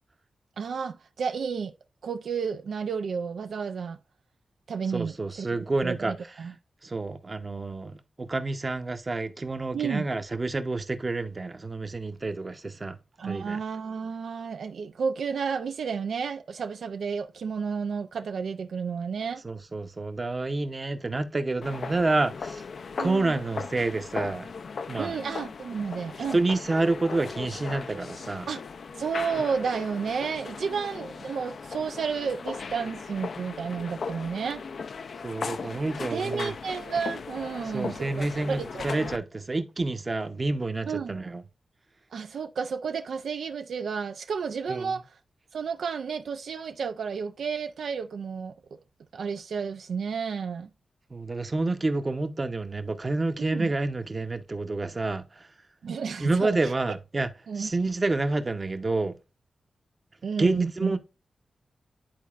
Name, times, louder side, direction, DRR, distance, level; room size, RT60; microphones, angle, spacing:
voice 1, 0.6-1.7 2.0-4.0 4.7-5.5 5.8-6.5 9.7-10.0 13.2-19.4 23.0-23.3 25.0-26.4 28.5-28.6 29.0-34.6 36.1-39.1 40.9-41.2 42.1-45.0 45.5-48.5 49.1-50.7 53.4-53.7 55.8-56.7 57.5-57.7 60.2-60.9, right 6 dB, 85° right, 0.4 m, -31 dB
voice 2, 4.9-6.1 6.8-13.0 13.2-13.6 19.4-22.6 23.0-24.5 24.9-25.1 26.3-28.5 35.2-36.5 37.7-41.4 44.7-44.9 51.1-55.2 56.2-57.3 57.6-59.2 60.4-61.0, right 2 dB, 35° right, 0.8 m, -28 dB
sound 1, 21.6-39.2, left 5 dB, 70° left, 0.4 m, -38 dB
10.5 x 4.0 x 2.4 m
cardioid pair, 75°, 0 cm